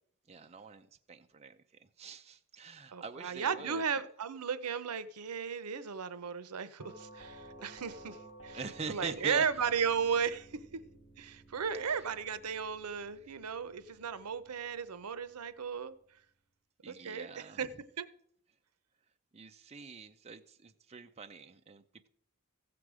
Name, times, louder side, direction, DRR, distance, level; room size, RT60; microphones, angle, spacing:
voice 1, 0.3-3.8 8.5-9.5 16.8-17.6 19.3-22.1, right 5 dB, 30° right, 0.5 m, -44 dB
voice 2, 2.9-8.2 8.4-8.6 8.9-10.8 11.2-16.0 16.9-17.7 18.0-18.1, right 6 dB, 90° right, 0.7 m, -35 dB
Doorbell, 6.8-15.6, right 1 dB, 55° left, 2.7 m, -55 dB
15.0 x 7.8 x 4.9 m
head